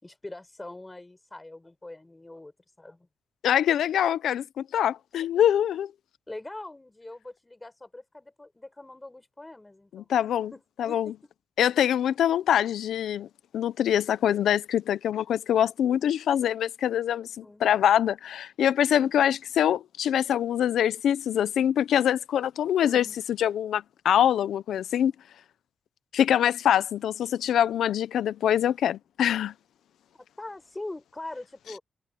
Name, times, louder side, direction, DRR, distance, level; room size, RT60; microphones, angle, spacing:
voice 1, 0.0-3.1 6.3-10.1 10.5-11.3 17.4-17.7 19.0-19.3 22.8-23.2 30.1-31.8, left 2 dB, 15° left, 5.5 m, -43 dB
voice 2, 3.4-5.9 9.9-10.5 10.8-11.1 11.6-13.3 13.5-23.1 23.4-25.1 26.1-29.5, left 10 dB, 85° left, 0.7 m, -24 dB
wide cardioid pair, 145°, 0 cm